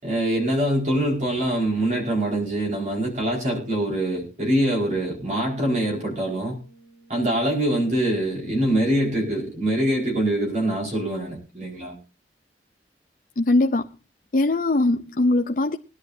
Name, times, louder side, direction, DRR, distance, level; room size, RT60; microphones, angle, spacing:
voice 1, 0.0-6.6 7.1-11.9, right 1 dB, 40° right, 4.7 m, -24 dB
sound 1, 5.3-9.0, right 2 dB, 75° right, 6.3 m, -48 dB
voice 2, 13.4-13.9 14.3-15.8, left 2 dB, 50° left, 0.6 m, -21 dB
20.5 x 11.0 x 2.7 m
head